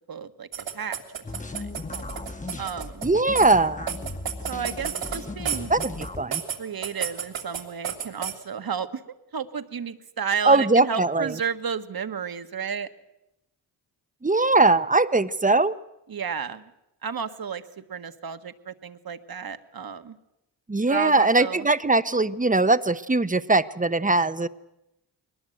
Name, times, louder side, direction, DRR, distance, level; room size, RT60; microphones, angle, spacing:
voice 1, 0.1-1.2 1.5-1.7 2.6-3.0 4.5-5.7 6.6-9.0 9.3-12.9 14.5-14.7 16.1-16.6 17.0-20.1 20.9-21.7, right 7 dB, 50° right, 10 dB, 1.5 m, -32 dB
sound 1, 0.5-3.1 3.4-3.5 3.9-5.2 5.4-6.6 6.8-8.3, right 8 dB, 75° right, 2.9 m, -31 dB
sound 2, 1.2-6.2, left 2 dB, 15° left, 1.2 m, -37 dB
voice 2, 3.0-3.9 5.7-6.4 10.4-11.3 14.2-15.7 20.7-24.5, right 3 dB, 15° right, 15 dB, 0.9 m, -21 dB
21.5 x 20.0 x 7.9 m, 0.89 s
cardioid pair, 50°, 45 cm